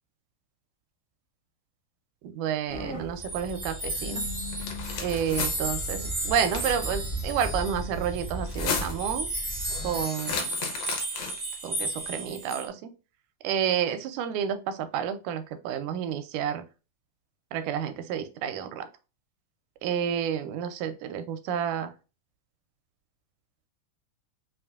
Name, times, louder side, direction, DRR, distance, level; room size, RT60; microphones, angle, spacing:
voice 1, 2.2-4.2 5.0-9.3 9.8-10.6 11.6-12.9 13.4-16.7 17.5-18.9 19.8-21.9, right 8 dB, 85° right, 9 dB, 2.0 m, -30 dB
sound 1, 2.7-10.0, right 1 dB, 50° left, 0.8 m, -37 dB
sound 2, 3.2-12.7, right 1 dB, 60° right, 0.6 m, -34 dB
sound 3, 4.5-5.5 6.3-6.9 8.4-9.1 10.2-11.5, left 6 dB, 75° left, 1.8 m, -33 dB
5.1 x 2.6 x 2.3 m, 0.31 s
omnidirectional pair, 3.5 m